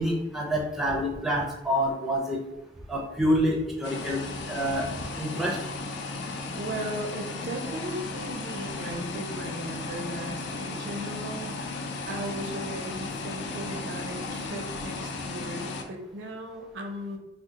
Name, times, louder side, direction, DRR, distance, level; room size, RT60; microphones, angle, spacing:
voice 1, 0.0-2.4 2.9-4.2 4.5-4.9 5.2-5.6, equal, ahead, -2 dB, 0.4 m, -27 dB
sound 1, 3.8-15.8, left 3 dB, 60° left, 0.4 m, -35 dB
voice 2, 6.6-11.6 12.1-17.2, right 1 dB, 65° right, 3 dB, 0.5 m, -37 dB
3.6 x 2.1 x 2.8 m, 0.99 s
head